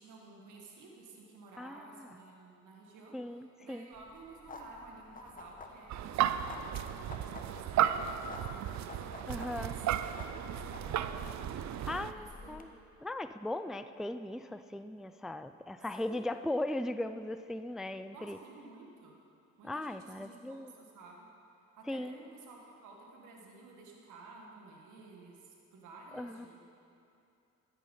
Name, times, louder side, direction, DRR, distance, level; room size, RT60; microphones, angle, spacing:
voice 1, 0.0-8.9 9.2-9.9 10.1-12.6 16.0-16.3 18.1-19.1 19.6-21.3 21.8-26.6, right 3 dB, 80° right, -1 dB, 2.0 m, -53 dB
voice 2, 1.6-2.1 3.1-3.9 9.3-9.7 11.9-12.7 13.0-18.4 19.6-20.7 21.9-22.2 26.1-26.5, left 1 dB, ahead, 10 dB, 0.3 m, -38 dB
sound 1, 3.9-12.6, left 3 dB, 25° left, 1.1 m, -51 dB
sound 2, 5.9-12.1, right 10 dB, 65° right, 0.6 m, -34 dB
13.0 x 9.3 x 5.6 m, 2.6 s
cardioid pair, 90°, 30 cm